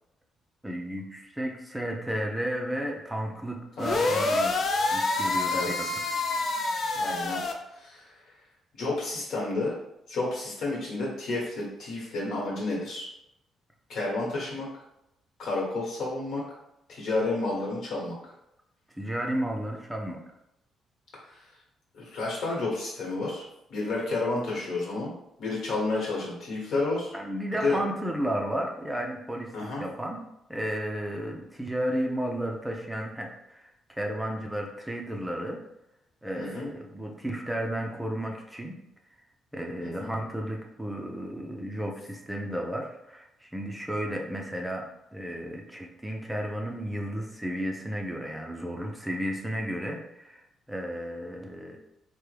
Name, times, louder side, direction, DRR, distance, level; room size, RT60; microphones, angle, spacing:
voice 1, 0.6-6.2 19.0-20.2 27.1-30.2 30.5-35.6 36.2-38.8 39.5-44.8 45.1-51.8, equal, 5° right, 1 dB, 0.4 m, -33 dB
sound 1, 3.8-7.5, left 2 dB, 50° left, 0.4 m, -27 dB
voice 2, 5.5-5.9 6.9-7.4 7.7-8.1 8.7-9.7 10.1-13.1 13.9-14.7 15.4-16.4 16.9-18.2 21.3-21.4 21.9-23.4 23.7-25.1 25.4-27.1 27.6-27.8 29.5-29.8 36.4-36.7 39.8-40.1, left 2 dB, 70° left, -3 dB, 1.3 m, -30 dB
3.3 x 2.1 x 3.2 m, 0.85 s
cardioid pair, 90°, 0 cm